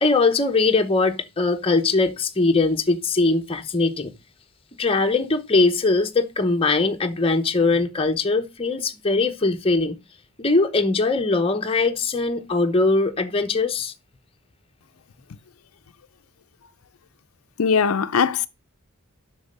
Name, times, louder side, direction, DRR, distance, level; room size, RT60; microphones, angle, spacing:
voice 1, 0.0-4.1 4.8-10.0 10.4-13.9, left 3 dB, 25° left, 0.9 m, -21 dB
voice 2, 17.6-18.5, left 6 dB, 80° left, 0.5 m, -20 dB
8.0 x 6.1 x 6.6 m
head